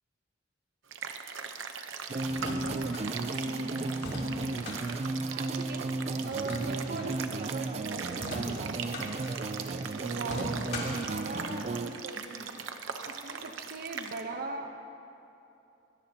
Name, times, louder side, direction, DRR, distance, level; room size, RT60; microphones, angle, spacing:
sound 1, 0.9-14.2, right 6 dB, 90° right, 0.9 m, -40 dB
sound 2, 2.1-11.9, right 2 dB, 35° right, 0.4 m, -34 dB
sound 3, 2.3-3.1 3.9-4.8 6.3-7.1 8.1-9.1 10.2-11.0, left 1 dB, 60° left, 3.2 m, -39 dB
voice 1, 2.6-3.0 3.4-4.6 5.6-5.9 6.2-9.0 9.6-10.6 10.9-12.6 13.1-14.7, right 3 dB, 55° right, 5 dB, 0.9 m, -40 dB
21.5 x 17.0 x 2.9 m, 2.8 s
head